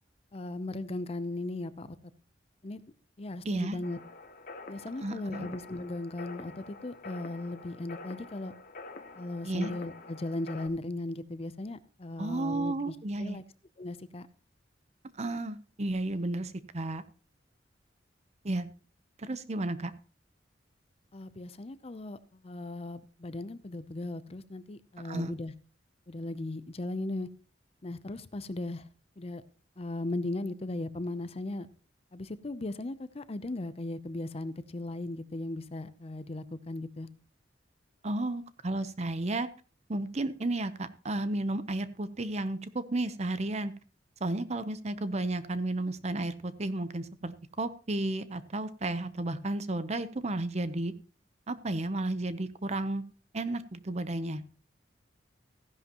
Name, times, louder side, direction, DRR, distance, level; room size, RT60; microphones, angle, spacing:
voice 1, 0.3-1.9 2.6-2.8 3.2-4.0 4.7-8.5 9.2-13.4 13.8-14.3 21.1-25.5 26.1-27.3 27.8-28.9 29.2-29.4 29.8-31.7 32.1-37.1, left 2 dB, 35° left, 0.6 m, -37 dB
voice 2, 3.4-3.8 5.0-5.5 9.4-9.7 12.2-13.4 15.2-17.0 18.4-18.7 19.2-19.9 25.1-25.3 38.0-39.5 39.9-43.7 44.2-50.9 51.5-53.0 53.3-54.4, right 2 dB, 40° right, 0.8 m, -33 dB
sound 1, 3.8-10.7, left 3 dB, 50° left, 1.2 m, -47 dB
15.0 x 11.0 x 3.0 m
head